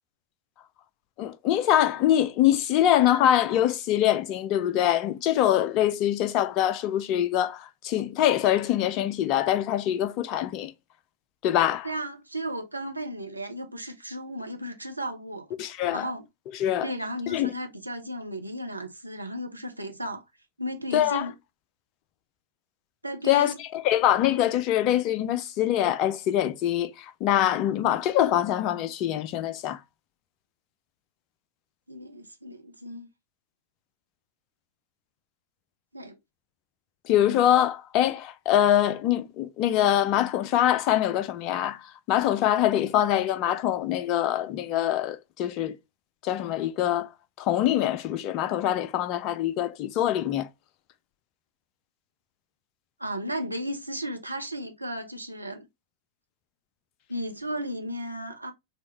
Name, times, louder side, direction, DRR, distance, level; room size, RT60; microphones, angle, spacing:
voice 1, 1.2-10.7 11.4-11.9 15.6-16.1 16.6-16.9 17.3-17.5 20.9-21.2 23.3-29.8 37.1-41.8 42.1-45.8 46.2-47.1 47.4-50.5, left 11 dB, 40° left, 0.4 m, -24 dB
voice 2, 11.8-15.5 15.9-16.3 16.8-20.2 20.6-21.3 23.0-23.6 31.9-33.1 35.9-36.1 53.0-55.7 57.1-58.5, equal, 85° right, 0.6 m, -34 dB
4.0 x 2.4 x 2.9 m
figure-of-eight pair, 90°, 0 cm